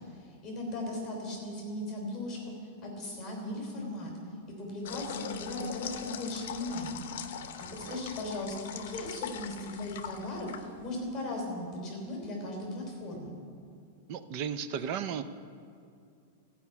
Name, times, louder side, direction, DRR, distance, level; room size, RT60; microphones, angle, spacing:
voice 1, 0.2-2.4 2.8-4.1 4.6-13.3, left 1 dB, 10° left, -1 dB, 3.4 m, -37 dB
sound 1, 4.8-11.1, left 8 dB, 60° left, 0.7 m, -42 dB
voice 2, 14.1-15.2, right 7 dB, 35° right, 12 dB, 0.4 m, -34 dB
14.0 x 5.8 x 8.3 m, 2.4 s
supercardioid pair, 180°, 0 cm